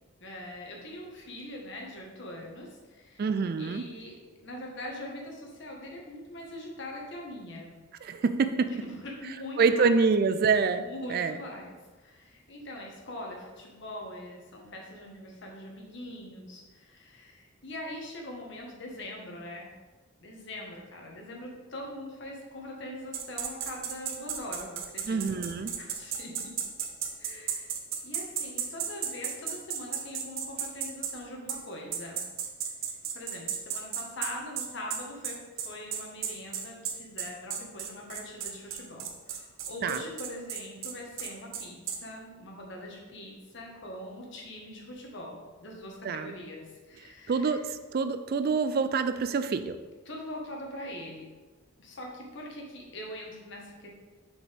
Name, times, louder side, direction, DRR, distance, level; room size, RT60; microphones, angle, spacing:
voice 1, 0.2-3.3 3.6-4.1 4.4-7.8 8.7-9.8 10.7-19.7 20.2-26.5 27.2-27.7 28.0-32.2 32.9-47.7 50.0-51.2 51.8-53.9, left 1 dB, 60° left, -1 dB, 1.4 m, -42 dB
voice 2, 3.2-3.9 8.0-8.7 9.6-11.4 25.1-25.7 39.8-40.0 46.0-46.3 47.3-49.8, right 5 dB, 50° right, 10 dB, 0.4 m, -26 dB
sound 1, 23.1-31.1 31.5-31.6 31.9-42.0, right 8 dB, 75° right, 0.8 m, -34 dB
6.9 x 5.1 x 3.4 m, 1.3 s
head